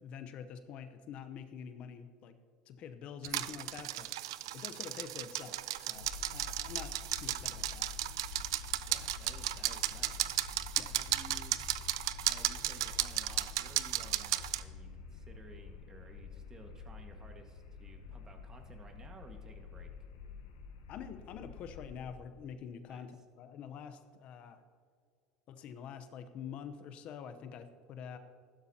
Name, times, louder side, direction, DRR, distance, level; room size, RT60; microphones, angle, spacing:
voice 1, 0.0-2.4 2.7-4.1 4.5-7.9 10.8-10.9 20.9-24.6 25.5-28.2, left 7 dB, 55° left, 10 dB, 0.8 m, -46 dB
sound 1, 3.2-14.6, right 15 dB, 85° right, 0.4 m, -35 dB
sound 2, 5.9-22.2, left 6 dB, 90° left, 1.1 m, -48 dB
voice 2, 8.8-10.3 10.9-11.6 12.3-19.9 22.9-23.0, right 2 dB, 25° right, 4 dB, 1.7 m, -55 dB
15.5 x 12.0 x 2.9 m, 2.2 s
supercardioid pair, 95°, 2 cm